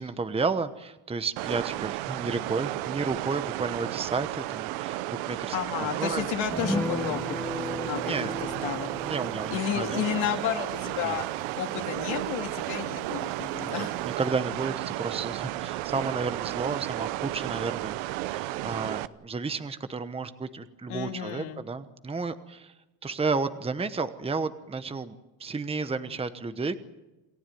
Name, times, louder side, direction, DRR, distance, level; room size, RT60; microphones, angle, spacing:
voice 1, 0.0-6.3 8.1-8.4 9.0-10.1 11.0-11.2 13.6-22.7 23.0-26.8, right 4 dB, 10° right, 11 dB, 1.1 m, -32 dB
sound 1, 1.4-19.1, right 17 dB, 80° right, 1.0 m, -33 dB
voice 2, 5.5-7.2 7.9-8.3 8.6-8.9 9.5-11.3 11.6-14.0 20.9-21.6, left 11 dB, 80° left, 4 dB, 2.4 m, -32 dB
sound 2, 6.5-13.3 13.6-13.7 14.0-14.2, left 1 dB, 5° left, 2.0 m, -37 dB
28.5 x 15.5 x 9.3 m, 1.0 s
cardioid pair, 110°, 47 cm